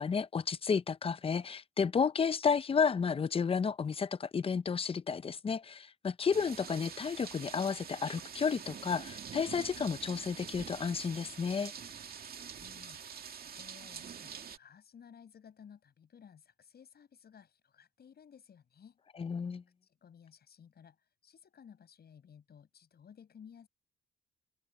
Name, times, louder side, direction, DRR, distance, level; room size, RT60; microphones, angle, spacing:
voice 1, 0.0-11.7 19.2-19.6, left 6 dB, 30° left, 0.6 m, -32 dB
sound 1, 6.3-14.6, right 7 dB, 50° right, 2.2 m, -46 dB
voice 2, 12.6-13.0 13.3-19.0 19.8-23.7, left 7 dB, 55° left, 6.4 m, -57 dB
cardioid pair, 90°, 20 cm